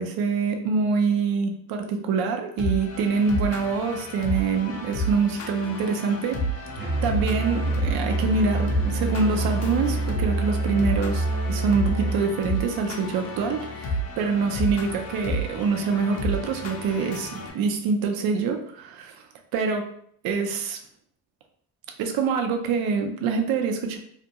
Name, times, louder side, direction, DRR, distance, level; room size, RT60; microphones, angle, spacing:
voice 1, 0.0-6.7 7.0-19.3 19.5-19.9 20.2-20.8 22.0-24.0, right 5 dB, 65° right, 4 dB, 0.5 m, -25 dB
sound 1, 2.6-17.5, equal, 40° left, 0.6 m, -31 dB
Musical instrument, 6.8-12.3, right 2 dB, 30° right, 0.6 m, -27 dB
2.4 x 2.2 x 2.7 m, 0.66 s
cardioid pair, 105°, 38 cm